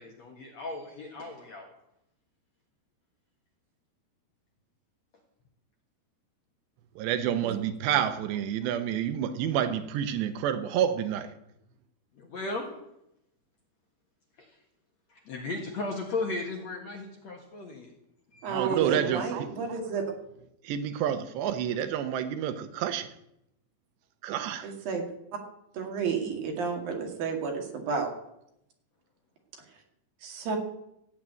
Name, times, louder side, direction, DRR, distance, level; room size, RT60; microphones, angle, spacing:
voice 1, 0.0-1.7 12.2-12.7 14.4-14.5 15.1-17.9 18.3-18.8, left 3 dB, 55° left, 2.2 m, -36 dB
voice 2, 7.0-11.3 18.5-19.5 20.6-23.1 24.2-24.7, right 9 dB, 80° right, 3.1 m, -29 dB
voice 3, 18.4-20.1 24.6-25.0 25.7-28.1 30.2-30.6, right 5 dB, 60° right, 3.8 m, -31 dB
15.0 x 8.5 x 9.0 m
omnidirectional pair, 5.0 m